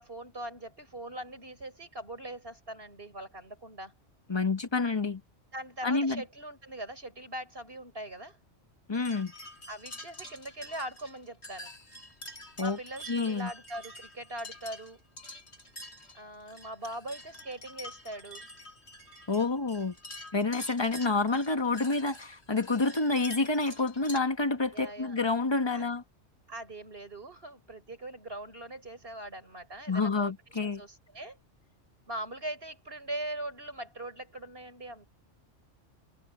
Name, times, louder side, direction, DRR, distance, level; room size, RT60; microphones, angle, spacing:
voice 1, 0.0-3.9 5.5-8.4 9.7-11.7 12.6-15.0 16.1-18.4 24.7-25.2 25.7-25.9 26.5-30.3 30.6-31.4 32.1-35.1, right 1 dB, 50° right, 6.5 m, -41 dB
voice 2, 4.3-5.2 5.8-6.2 8.9-9.3 12.6-12.8 13.1-13.5 19.3-19.9 20.3-26.0 29.9-30.8, left 3 dB, 20° left, 1.3 m, -28 dB
sound 1, 8.9-24.2, left 1 dB, 60° left, 7.5 m, -47 dB
omnidirectional pair, 1.2 m